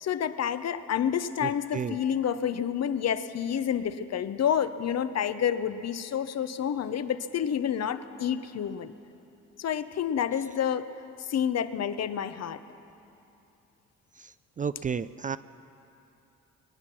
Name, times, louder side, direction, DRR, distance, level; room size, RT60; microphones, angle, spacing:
voice 1, 0.0-8.9 9.6-10.9 11.3-12.6, left 8 dB, 55° left, 12 dB, 0.8 m, -29 dB
voice 2, 1.4-2.0 14.6-15.4, right 6 dB, 25° right, 14 dB, 0.4 m, -32 dB
22.5 x 9.7 x 6.1 m, 2.8 s
supercardioid pair, 55°, 31 cm